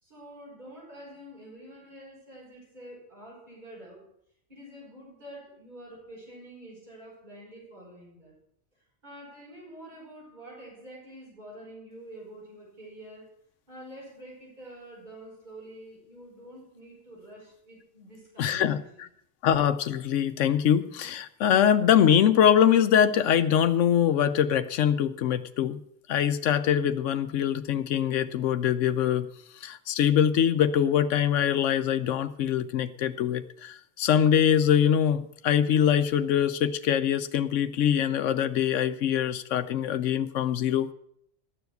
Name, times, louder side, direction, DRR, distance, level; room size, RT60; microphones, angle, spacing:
voice 1, 0.0-4.0 4.5-8.3 9.0-13.3 13.7-19.1, right 1 dB, 40° right, -5 dB, 5.4 m, -47 dB
voice 2, 18.4-19.1 19.4-25.8 26.1-29.3 29.6-40.9, left 9 dB, 90° left, 10 dB, 1.0 m, -23 dB
12.5 x 7.1 x 7.9 m, 0.72 s
omnidirectional pair, 1.2 m